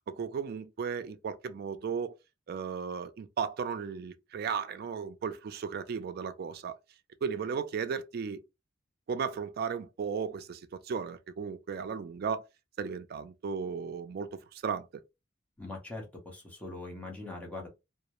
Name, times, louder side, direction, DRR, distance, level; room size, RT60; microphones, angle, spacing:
voice 1, 0.1-2.1 2.5-6.8 7.2-8.4 9.1-12.4 12.8-14.9, right 6 dB, 55° right, 0.3 m, -35 dB
voice 2, 15.6-17.7, left 2 dB, 5° left, 0.7 m, -42 dB
2.3 x 2.0 x 2.8 m
head